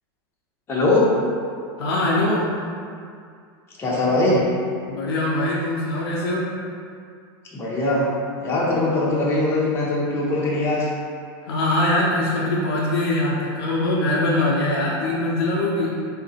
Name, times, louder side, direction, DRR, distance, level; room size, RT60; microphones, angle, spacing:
voice 1, 0.7-1.1 3.8-4.4 7.5-8.1 8.4-10.9, left 2 dB, 20° left, -6 dB, 0.7 m, -21 dB
voice 2, 1.8-2.5 4.9-6.6 11.4-16.0, left 1 dB, 90° left, -6 dB, 0.6 m, -22 dB
3.7 x 2.1 x 4.0 m, 2.2 s
supercardioid pair, 140°, 13 cm